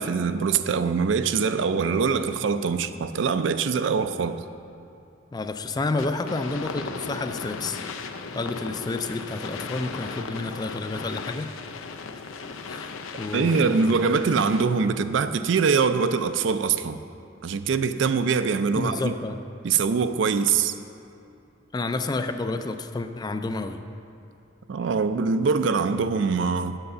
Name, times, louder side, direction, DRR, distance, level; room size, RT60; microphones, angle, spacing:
voice 1, 0.0-4.4 13.3-17.0 17.4-19.1 19.6-20.7 24.7-26.8, right 5 dB, 65° right, 10 dB, 0.4 m, -23 dB
voice 2, 5.3-7.8 8.3-11.5 12.7-13.9 18.7-19.4 21.7-23.8, left 3 dB, 20° left, 8 dB, 0.3 m, -30 dB
sound 1, 6.0-14.9, left 4 dB, 85° left, 0.5 m, -37 dB
7.8 x 6.9 x 6.8 m, 2.6 s
head